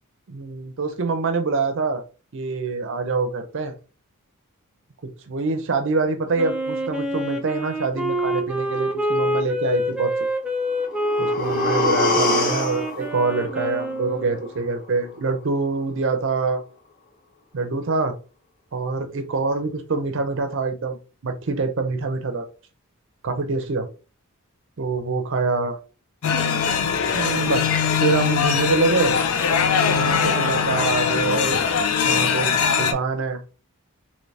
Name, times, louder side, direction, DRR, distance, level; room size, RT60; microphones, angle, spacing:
voice 1, 0.3-2.0 2.3-3.7 5.3-10.1 11.2-16.6 17.5-18.2 18.7-21.0 21.2-22.4 23.2-23.9 24.8-25.8 27.1-27.7 28.0-29.1 29.8-31.6 32.0-33.4, right 4 dB, 55° right, 7 dB, 0.5 m, -25 dB
Wind instrument woodwind instrument, 6.4-14.5, right 1 dB, 5° right, 0.4 m, -26 dB
sound 1, 10.7-14.7 15.0-15.1, left 3 dB, 40° left, 0.7 m, -26 dB
sound 2, 26.2-32.9, left 6 dB, 70° left, 0.4 m, -21 dB
3.2 x 2.8 x 2.7 m, 0.34 s
head